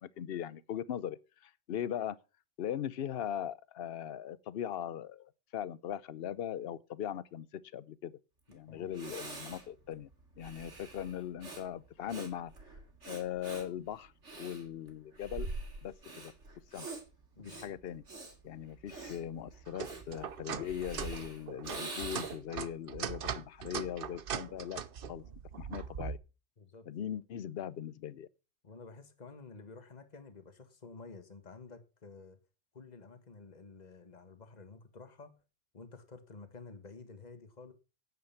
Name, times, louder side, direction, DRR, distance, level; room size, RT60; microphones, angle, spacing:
voice 1, 0.0-2.2 2.6-8.1 8.5-10.1 10.4-12.5 13.0-15.5 15.8-16.3 16.7-16.9 17.4-18.0 18.4-24.8 25.1-25.2 25.6-26.2 26.9-28.3, left 10 dB, 55° left, 0.9 m, -40 dB
Breathing, 8.5-8.6 8.9-22.6, right 3 dB, 70° right, 3.1 m, -45 dB
voice 2, 17.3-17.7 26.6-26.9 28.6-32.4 32.7-35.3 35.7-37.7, left 4 dB, 35° left, 1.7 m, -51 dB
sound 1, 19.7-26.2, right 7 dB, 50° right, 0.9 m, -40 dB
9.5 x 9.2 x 5.7 m
omnidirectional pair, 1.3 m